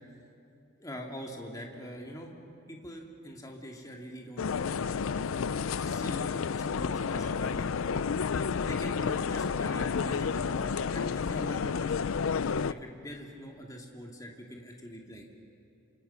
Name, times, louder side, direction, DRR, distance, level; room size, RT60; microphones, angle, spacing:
voice 1, 0.8-2.3 2.7-5.2 5.8-6.3 6.7-8.0 8.6-15.2, equal, 15° left, 1 dB, 2.4 m, -44 dB
sound 1, 4.4-12.7, left 5 dB, 75° left, 0.5 m, -30 dB
28.5 x 26.0 x 5.7 m, 2.6 s
head